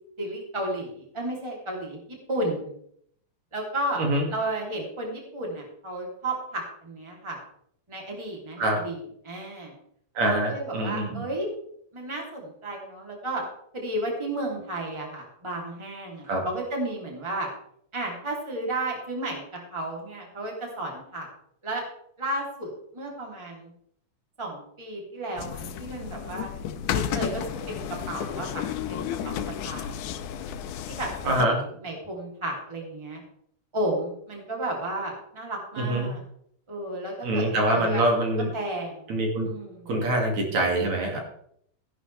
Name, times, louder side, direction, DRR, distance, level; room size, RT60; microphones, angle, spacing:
voice 1, 0.2-2.0 2.3-2.7 3.5-4.0 4.3-7.4 7.9-9.0 9.2-9.8 10.2-11.5 11.9-13.4 13.7-17.5 17.9-19.4 19.7-21.3 21.6-21.8 22.2-23.7 24.4-26.5 26.9-27.8 28.1-29.4 29.6-29.9 30.9-33.2 33.7-36.2 36.7-37.4 37.7-38.0 38.5-39.2 39.4-39.9, right 1 dB, 10° right, -1 dB, 2.8 m, -33 dB
voice 2, 10.2-11.3 16.3-16.4 31.3-31.6 35.8-36.1 37.2-38.5 39.1-39.5 39.9-41.2, right 1 dB, 65° right, 0 dB, 3.5 m, -24 dB
sound 1, 25.4-31.5, left 9 dB, 85° left, 2.3 m, -32 dB
15.0 x 11.0 x 3.4 m, 0.68 s
omnidirectional pair, 3.5 m